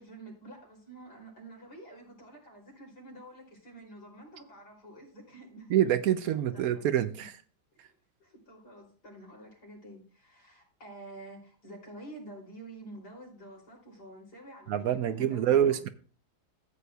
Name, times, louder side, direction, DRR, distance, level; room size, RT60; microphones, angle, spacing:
voice 1, 0.0-5.7 6.5-6.8 7.9-8.0 8.2-15.9, right 1 dB, 75° left, -2 dB, 3.7 m, -49 dB
voice 2, 5.7-7.3 14.7-15.9, right 10 dB, 70° right, 11 dB, 1.0 m, -26 dB
14.0 x 8.1 x 2.3 m, 0.41 s
omnidirectional pair, 1.7 m